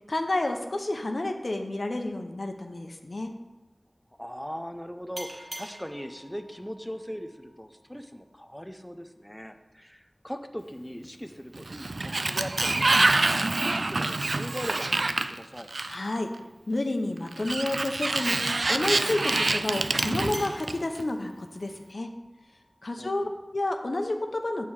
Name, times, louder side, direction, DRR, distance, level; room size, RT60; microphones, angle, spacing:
voice 1, 0.1-3.3 15.9-16.3 16.7-22.1 22.8-24.7, left 2 dB, 75° left, 4 dB, 0.9 m, -30 dB
voice 2, 4.2-15.7 23.0-23.3, equal, 10° left, 7 dB, 0.7 m, -40 dB
sound 1, 5.2-8.4 12.6-15.8 20.0-22.9, right 1 dB, 65° right, 1.5 m, -46 dB
Sliding door, 11.5-16.2 17.3-21.0, right 2 dB, 90° right, 0.4 m, -26 dB
8.4 x 4.6 x 7.3 m, 1.1 s
wide cardioid pair, 40°, 0 cm